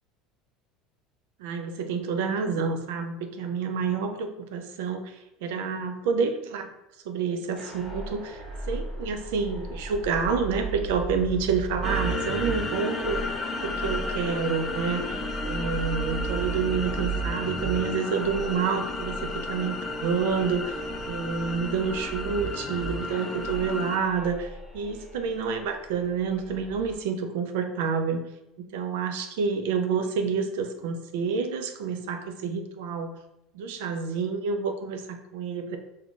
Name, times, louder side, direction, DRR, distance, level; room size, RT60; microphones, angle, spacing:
voice 1, 1.4-6.7 7.1-15.2 15.4-20.8 21.1-28.2 28.6-33.1 33.5-35.8, right 5 dB, 85° right, 6 dB, 0.4 m, -28 dB
sound 1, 7.6-27.0, right 4 dB, 5° left, 1.3 m, -37 dB
sound 2, 11.8-24.0, left 3 dB, 20° left, 0.3 m, -33 dB
3.7 x 2.2 x 2.4 m, 0.90 s
supercardioid pair, 125°, 0 cm